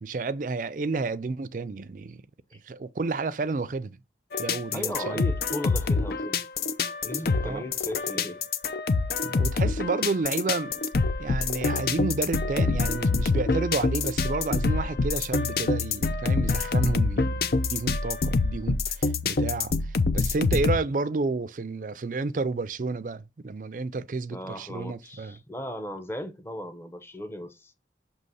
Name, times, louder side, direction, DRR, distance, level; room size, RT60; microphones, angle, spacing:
voice 1, 0.0-2.2 2.6-4.0 4.4-5.3 7.4-7.6 9.2-10.8 11.2-25.4, right 3 dB, 45° right, 0.4 m, -31 dB
sound 1, 4.3-20.8, left 3 dB, 55° left, 0.5 m, -26 dB
voice 2, 4.7-6.4 7.0-8.4 24.3-27.7, left 1 dB, 15° left, 0.7 m, -36 dB
6.4 x 3.0 x 5.4 m
head